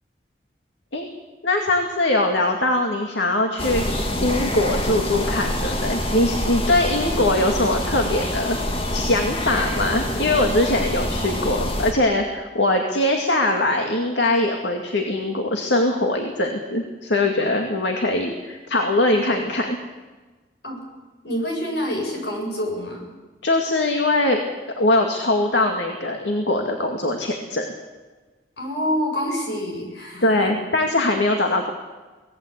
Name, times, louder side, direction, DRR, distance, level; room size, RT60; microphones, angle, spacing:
voice 1, 1.4-3.8 4.2-19.8 23.4-24.4 24.8-27.7 30.2-31.7, left 2 dB, 90° left, 3 dB, 2.3 m, -22 dB
sound 1, 3.6-11.9, left 1 dB, 30° left, 2.4 m, -26 dB
voice 2, 21.2-23.1 28.6-30.5, equal, 75° left, 1 dB, 7.8 m, -27 dB
25.0 x 18.0 x 8.4 m, 1.3 s
head